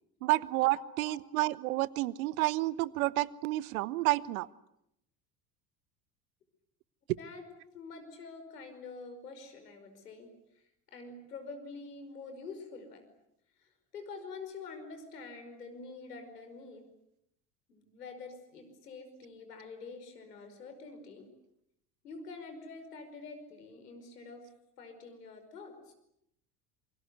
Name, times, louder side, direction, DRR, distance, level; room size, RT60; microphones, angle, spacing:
voice 1, 0.2-4.5, right 19 dB, 60° right, 21 dB, 1.1 m, -30 dB
voice 2, 7.7-10.3 10.9-13.1 13.9-16.8 17.7-21.3 22.0-24.5 24.8-25.9, left 4 dB, 75° left, 8 dB, 5.3 m, -46 dB
27.5 x 25.0 x 8.1 m, 0.77 s
figure-of-eight pair, 65°, 47 cm